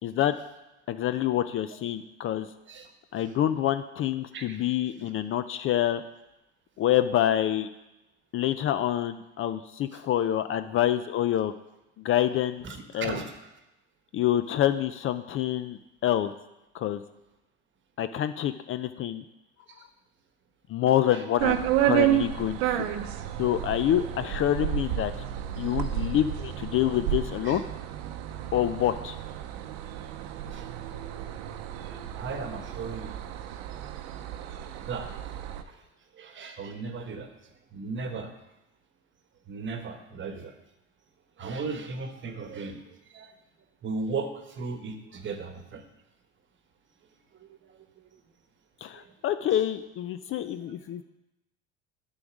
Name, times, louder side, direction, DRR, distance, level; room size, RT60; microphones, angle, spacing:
voice 1, 0.0-0.4 0.9-2.5 3.1-6.0 6.8-7.7 8.3-11.5 12.0-12.6 12.9-13.2 14.1-16.3 16.7-17.0 18.0-19.2 20.7-22.9 23.4-25.1 25.6-27.6 28.5-29.2 48.8-51.0, left 11 dB, 40° left, 11 dB, 0.4 m, -27 dB
voice 2, 12.6-13.4 21.1-21.2 27.4-27.6 30.5-30.7 31.9-33.2 34.8-35.1 35.7-35.8 36.1-37.3 37.7-38.3 39.5-40.5 41.4-43.3 43.8-45.8 47.4-47.8 48.9-49.1, right 4 dB, 35° right, 7 dB, 1.1 m, -36 dB
sound 1, 21.4-35.6, right 12 dB, 85° right, 0.7 m, -31 dB
9.7 x 3.9 x 6.1 m, 0.95 s
supercardioid pair, 95°, 32 cm